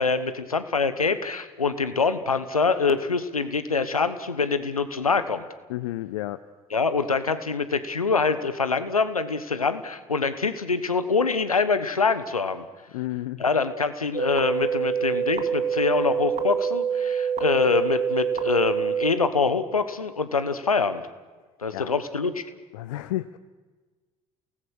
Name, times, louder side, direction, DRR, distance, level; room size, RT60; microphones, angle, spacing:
voice 1, 0.0-5.4 6.7-12.6 13.4-21.0 21.6-22.4, left 4 dB, 85° left, 12 dB, 1.2 m, -25 dB
voice 2, 5.7-6.4 12.9-13.4 21.7-21.9 22.7-23.4, left 15 dB, 70° left, 14 dB, 0.7 m, -31 dB
sound 1, 14.1-19.1, right 7 dB, 40° right, 2.2 m, -26 dB
29.0 x 18.5 x 6.4 m, 1.3 s
figure-of-eight pair, 55°, 18 cm